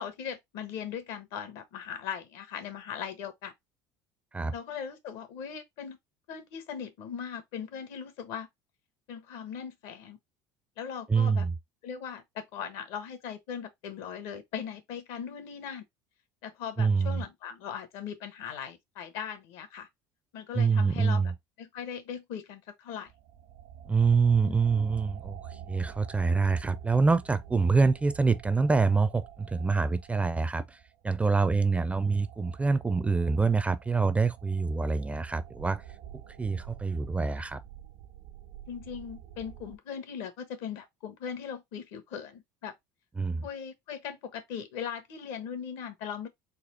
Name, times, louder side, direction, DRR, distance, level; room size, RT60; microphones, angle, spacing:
voice 1, 0.0-3.5 4.5-6.0 6.3-8.5 9.1-10.2 10.8-11.5 11.8-15.8 16.4-19.9 20.3-21.3 21.6-23.1 24.4-24.6 37.4-37.5 38.7-42.7 43.4-46.3, left 7 dB, 75° left, 1.1 m, -39 dB
voice 2, 11.1-11.5 16.8-17.2 20.5-21.3 23.9-30.8 31.0-35.8 36.4-37.6 43.2-43.5, right 4 dB, 15° right, 0.4 m, -26 dB
sound 1, 23.1-39.8, right 10 dB, 75° right, 0.8 m, -47 dB
4.1 x 2.4 x 4.0 m
supercardioid pair, 95°, 9 cm